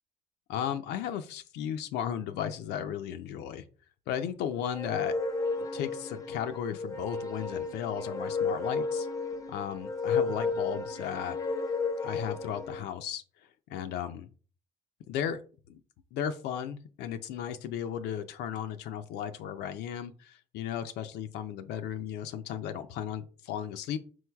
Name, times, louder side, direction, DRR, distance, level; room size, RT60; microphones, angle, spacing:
voice 1, 0.5-3.6 4.1-5.1 5.6-9.1 9.5-11.4 12.0-13.2 13.7-14.3 15.1-15.4 15.7-15.8 16.1-24.0, left 9 dB, 80° left, 8 dB, 0.4 m, -35 dB
sound 1, 4.7-12.8, left 4 dB, 20° left, 0.5 m, -33 dB
4.6 x 3.8 x 2.2 m, 0.39 s
cardioid pair, 110°, 17 cm